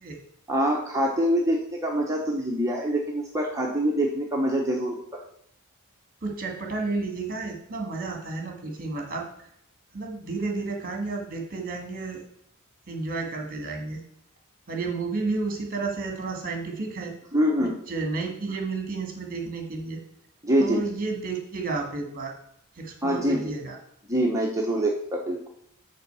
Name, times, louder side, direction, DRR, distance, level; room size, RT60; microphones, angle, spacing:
voice 1, 0.5-5.0 17.3-17.7 20.4-20.8 23.0-23.5 24.1-25.5, equal, 15° right, -1 dB, 0.9 m, -25 dB
voice 2, 6.2-9.3 9.9-12.2 12.9-14.0 14.7-17.1 17.6-20.0 20.6-22.3 22.8-23.8, right 3 dB, 40° right, 2 dB, 1.8 m, -31 dB
6.6 x 4.7 x 6.8 m, 0.71 s
head